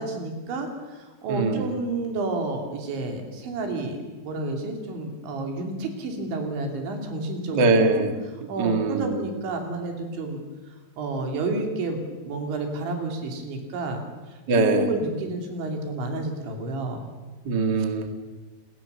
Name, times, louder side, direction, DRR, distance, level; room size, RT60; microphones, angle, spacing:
voice 1, 0.0-7.7 7.9-8.0 8.5-10.4 11.0-12.0 12.2-14.0 14.3-17.0, right 2 dB, 75° right, 3 dB, 5.5 m, -30 dB
voice 2, 1.3-1.7 7.5-8.1 8.6-9.2 14.5-14.9 17.4-18.1, right 3 dB, 40° right, 6 dB, 1.6 m, -22 dB
30.0 x 19.5 x 7.0 m, 1.2 s
omnidirectional pair, 5.3 m